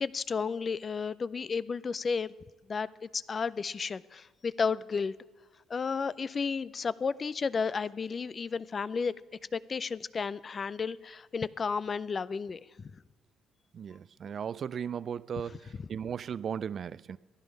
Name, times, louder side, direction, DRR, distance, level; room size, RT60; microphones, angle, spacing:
voice 1, 0.0-2.3 2.7-5.1 5.7-9.1 9.5-12.9 15.7-15.9, left 5 dB, 40° left, 0.4 m, -32 dB
voice 2, 13.7-17.2, right 7 dB, 50° right, 0.3 m, -36 dB
15.5 x 10.5 x 5.2 m
hypercardioid pair, 50°, 0 cm